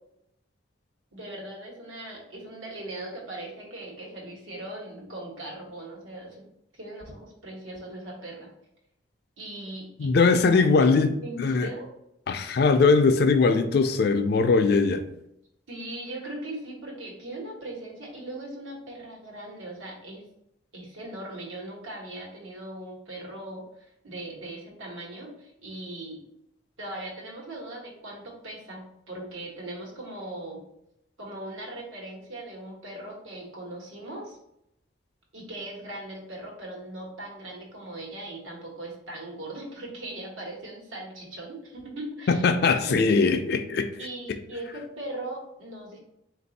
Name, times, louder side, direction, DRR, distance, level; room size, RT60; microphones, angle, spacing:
voice 1, 1.1-6.5 6.7-8.5 9.4-10.9 11.2-11.9 15.7-20.2 20.7-26.2 26.8-30.6 31.2-34.4 35.3-42.4 42.8-43.0 44.0-46.0, right 1 dB, 90° right, 1.3 m, -39 dB
voice 2, 10.0-11.1 11.4-11.7 12.3-15.0 42.3-43.9, left 4 dB, 55° left, 0.3 m, -21 dB
3.8 x 2.6 x 4.0 m
head